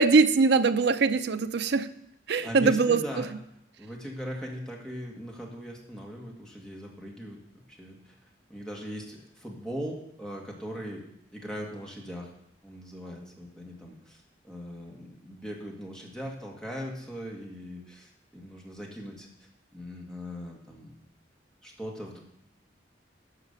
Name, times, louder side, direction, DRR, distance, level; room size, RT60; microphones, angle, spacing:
voice 1, 0.0-1.9 2.3-3.0, right 4 dB, 65° right, 10 dB, 0.6 m, -22 dB
voice 2, 2.4-3.3 3.8-7.4 7.7-8.1 8.5-11.0 11.3-12.3 12.6-19.3 19.7-21.0 21.6-22.2, equal, 5° left, -2 dB, 2.0 m, -39 dB
11.0 x 5.8 x 6.8 m, 0.77 s
head